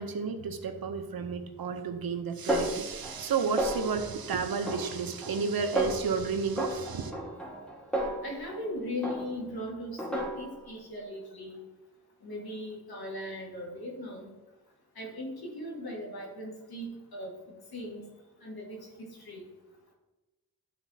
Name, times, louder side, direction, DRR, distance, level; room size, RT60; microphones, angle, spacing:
voice 1, 0.0-7.1, right 5 dB, 75° right, 7 dB, 0.8 m, -32 dB
Snare drum, 2.5-3.3 3.6-4.1 4.7-5.4 5.8-6.1 6.6-8.7 9.0-9.5 10.0-10.7, right 1 dB, 5° left, 1.6 m, -33 dB
voice 2, 8.2-11.6 12.2-14.3 15.0-17.3 17.7-18.1 18.4-19.5, left 1 dB, 80° left, -2 dB, 1.8 m, -38 dB
11.5 x 4.0 x 2.8 m, 1.1 s
cardioid pair, 45°, 36 cm